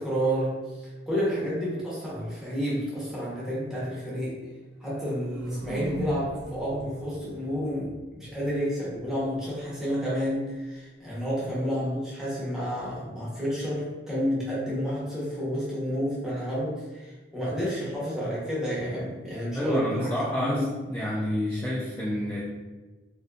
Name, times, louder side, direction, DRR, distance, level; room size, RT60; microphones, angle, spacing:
voice 1, 0.0-4.4 4.8-20.1 20.4-20.6, equal, 5° right, -8 dB, 0.8 m, -30 dB
sound 1, 4.7-8.8, right 1 dB, 80° right, 0.4 m, -40 dB
voice 2, 19.5-22.4, left 1 dB, 10° left, -7 dB, 0.3 m, -29 dB
2.6 x 2.4 x 2.3 m, 1.2 s
head